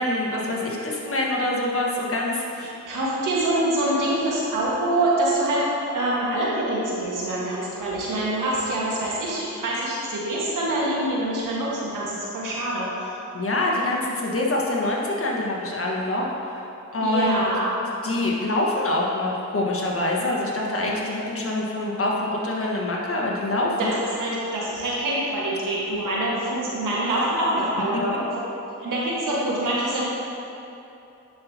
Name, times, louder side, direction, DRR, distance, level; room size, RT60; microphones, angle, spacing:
voice 1, 0.0-2.7 13.3-16.2 16.9-17.4 18.0-24.0, left 1 dB, 45° left, -2 dB, 1.4 m, -25 dB
voice 2, 2.6-5.6 5.9-13.1 17.0-17.7 23.8-28.2 28.8-30.1, right 1 dB, 85° right, -6 dB, 1.6 m, -25 dB
10.0 x 5.8 x 2.8 m, 2.9 s
cardioid pair, 65°, 31 cm